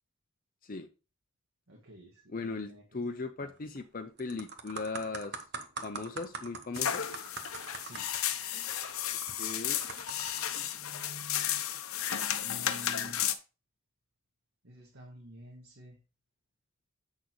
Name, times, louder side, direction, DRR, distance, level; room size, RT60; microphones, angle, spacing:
voice 1, 1.7-2.8 3.4-3.5 7.8-8.1 12.4-13.2 14.6-16.0, equal, 75° right, -2 dB, 1.8 m, -50 dB
voice 2, 2.3-5.4 5.8-7.0 9.4-9.8, left 3 dB, 40° left, 7 dB, 0.5 m, -38 dB
sound 1, 3.6-3.8 4.2-10.6 11.3-11.5, right 4 dB, 50° right, 0.9 m, -43 dB
sound 2, 6.7-13.3, left 10 dB, 90° left, 0.8 m, -33 dB
8.2 x 6.3 x 3.1 m, 0.32 s
head